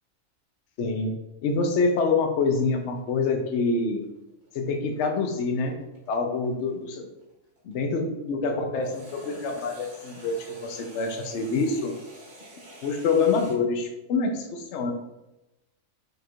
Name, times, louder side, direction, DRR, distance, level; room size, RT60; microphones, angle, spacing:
voice 1, 0.8-1.2 1.4-4.0 4.5-5.8 6.1-7.1 7.6-12.0 12.8-14.9, left 4 dB, 65° left, 4 dB, 0.9 m, -26 dB
sound 1, 2.6-7.7 8.8-13.6, right 1 dB, 85° right, 1.8 m, -49 dB
4.9 x 2.4 x 4.4 m, 0.95 s
omnidirectional pair, 1.4 m